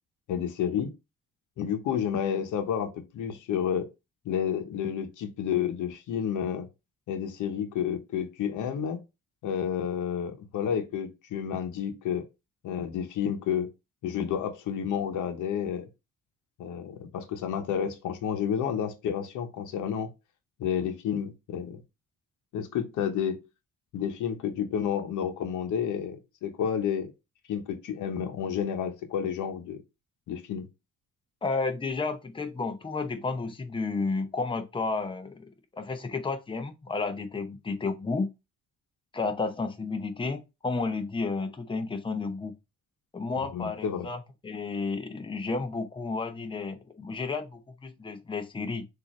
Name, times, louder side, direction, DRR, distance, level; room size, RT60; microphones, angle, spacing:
voice 1, 0.3-0.9 1.6-3.9 4.2-6.7 7.1-9.0 9.4-12.2 12.6-13.7 14.0-15.9 16.6-20.1 20.6-21.8 22.5-23.4 23.9-27.1 27.5-29.8 30.3-30.7 43.5-44.1, left 8 dB, 80° left, 1.0 m, -30 dB
voice 2, 31.4-38.3 39.1-42.5 43.1-48.8, left 4 dB, 15° left, 0.7 m, -32 dB
6.3 x 2.7 x 3.0 m
cardioid pair, 90°, 30 cm